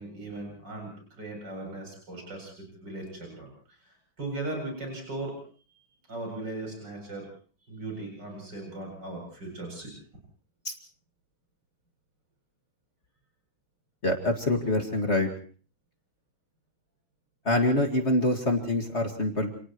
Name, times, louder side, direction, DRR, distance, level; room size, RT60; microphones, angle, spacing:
voice 1, 0.0-3.5 4.2-5.4 6.1-7.3 7.7-9.9, right 2 dB, 60° right, 1 dB, 8.5 m, -38 dB
voice 2, 14.0-15.3 17.4-19.5, left 1 dB, 35° left, 3 dB, 2.3 m, -25 dB
29.5 x 29.0 x 3.1 m, 0.42 s
omnidirectional pair, 2.1 m